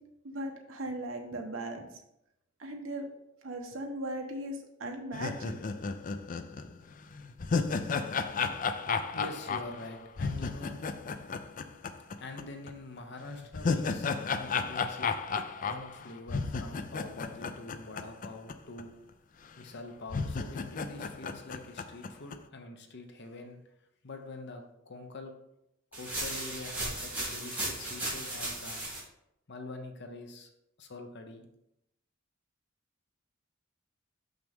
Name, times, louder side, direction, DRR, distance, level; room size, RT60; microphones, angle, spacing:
voice 1, 0.2-1.8 2.6-3.1 3.4-5.6, right 1 dB, 70° right, 2 dB, 1.2 m, -38 dB
sound 1, 5.1-12.4 12.7-12.8 13.3-18.5 18.8-18.9 19.6-19.7 20.1-22.4, left 4 dB, 40° left, 0.4 m, -33 dB
voice 2, 9.1-10.8 12.2-15.1 15.6-18.9 19.6-23.6 24.0-25.3 25.9-28.8 29.5-30.5 30.8-31.5, left 2 dB, 60° left, 5 dB, 0.9 m, -45 dB
sound 2, 25.9-29.0, right 1 dB, 10° right, 2.6 m, -36 dB
6.5 x 6.0 x 3.5 m, 0.82 s
head